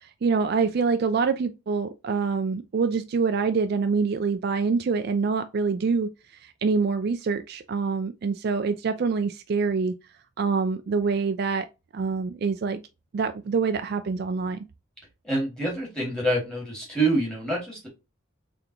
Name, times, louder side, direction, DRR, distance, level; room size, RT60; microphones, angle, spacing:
voice 1, 0.0-6.1 6.4-9.9 10.4-11.7 11.9-12.8 13.1-14.6, right 5 dB, 50° right, 0.3 m, -25 dB
voice 2, 15.2-17.9, right 2 dB, 5° left, 1.9 m, -26 dB
3.7 x 3.4 x 2.8 m
head